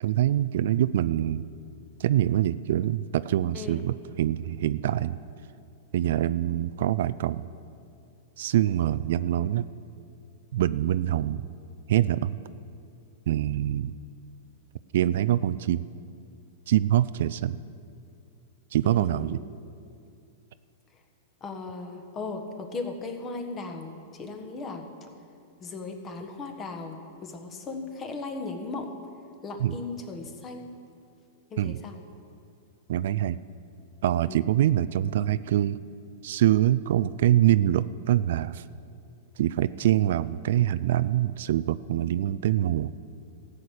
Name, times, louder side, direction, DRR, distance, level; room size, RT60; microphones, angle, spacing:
voice 1, 0.0-1.4 2.0-5.2 5.9-7.5 8.4-9.7 10.5-11.4 11.9-12.4 13.3-13.9 14.9-15.9 16.7-17.6 18.7-19.4 29.6-29.8 31.6-31.8 32.9-33.4 34.0-35.8 36.2-38.6 39.4-42.9, right 12 dB, 65° right, 15 dB, 0.3 m, -24 dB
voice 2, 18.8-19.4 21.4-24.9 25.6-28.9 29.4-30.7 31.5-31.9 34.3-34.5, left 3 dB, 25° left, 5 dB, 1.4 m, -37 dB
14.0 x 6.5 x 8.6 m, 2.5 s
hypercardioid pair, 140°, 0 cm